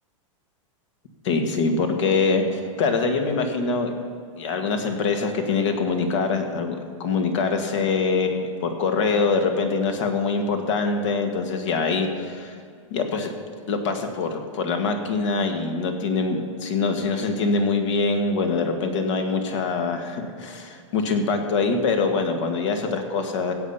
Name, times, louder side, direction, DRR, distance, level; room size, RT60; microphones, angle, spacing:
voice 1, 1.2-2.4 2.8-3.9 4.4-12.5 12.9-13.3 13.7-23.5, left 4 dB, 65° left, 5 dB, 1.9 m, -24 dB
16.0 x 8.5 x 5.7 m, 2.3 s
supercardioid pair, 155°, 17 cm